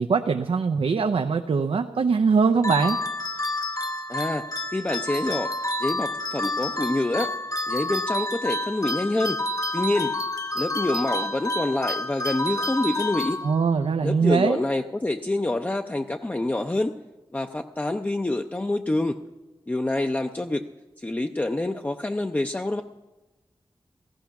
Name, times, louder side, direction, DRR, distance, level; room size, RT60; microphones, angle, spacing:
voice 1, 0.0-3.0 13.4-14.6, right 5 dB, 85° right, 6 dB, 0.5 m, -22 dB
sound 1, 2.6-13.9, left 1 dB, 40° left, 1.1 m, -29 dB
voice 2, 4.1-4.5 4.7-5.5 5.8-7.3 7.7-9.4 9.7-10.2 10.5-13.4 14.0-16.9 17.3-19.2 19.7-20.7 21.0-22.8, left 2 dB, 15° left, 5 dB, 0.5 m, -26 dB
15.5 x 14.0 x 5.8 m, 1.1 s
wide cardioid pair, 85°, 9 cm